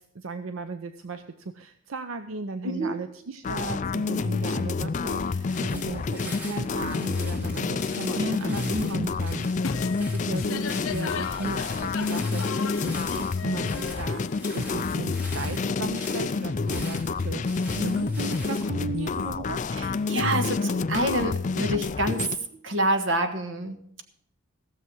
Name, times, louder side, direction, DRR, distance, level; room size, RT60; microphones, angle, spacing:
voice 1, 0.0-9.7 10.0-19.6, right 4 dB, 90° right, 9 dB, 0.6 m, -36 dB
voice 2, 2.6-3.0 8.2-9.1 17.7-18.1 19.8-22.3 22.6-23.8, right 1 dB, 70° right, 7 dB, 1.4 m, -27 dB
sound 1, 3.4-22.3, left 4 dB, 35° left, 0.4 m, -28 dB
sound 2, 5.2-18.7, left 2 dB, 5° right, 3.2 m, -44 dB
sound 3, 9.6-15.3, left 6 dB, 80° left, 0.6 m, -38 dB
16.0 x 7.0 x 6.2 m, 0.69 s
head